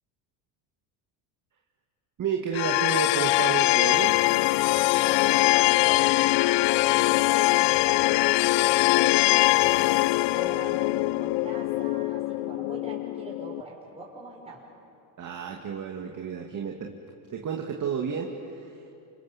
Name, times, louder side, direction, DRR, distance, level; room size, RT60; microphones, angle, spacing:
voice 1, 2.2-4.1 15.2-16.9 17.3-18.3 18.6-18.7, right 7 dB, 40° right, 1 dB, 2.2 m, -31 dB
sound 1, 2.5-13.6, left 20 dB, 65° left, 0.5 m, -22 dB
voice 2, 5.0-10.9 11.2-14.7, right 1 dB, 15° right, -3 dB, 5.8 m, -41 dB
28.5 x 26.5 x 7.1 m, 2.7 s
cardioid pair, 115°, 47 cm